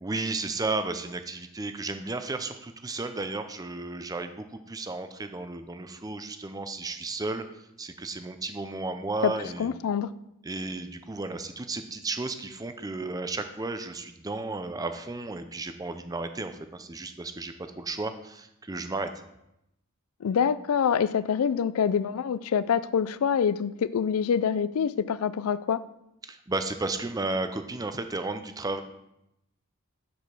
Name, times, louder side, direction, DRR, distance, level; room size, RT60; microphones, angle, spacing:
voice 1, 0.0-7.4 7.8-9.7 10.4-19.1 26.2-28.8, right 3 dB, 15° right, 9 dB, 0.5 m, -33 dB
voice 2, 9.6-10.1 20.2-25.8, left 7 dB, 75° left, 16 dB, 0.4 m, -25 dB
6.9 x 4.9 x 6.0 m, 0.83 s
head